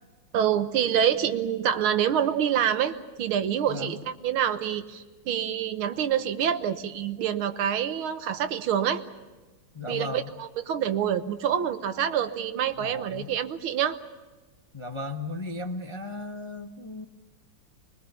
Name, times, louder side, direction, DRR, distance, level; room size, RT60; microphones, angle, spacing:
voice 1, 0.3-9.0 9.9-14.0, right 9 dB, 80° right, 10 dB, 1.9 m, -26 dB
voice 2, 9.7-10.3 12.8-13.3 14.7-17.1, left 2 dB, 30° left, 4 dB, 0.6 m, -36 dB
25.0 x 22.0 x 7.0 m, 1.2 s
omnidirectional pair, 2.3 m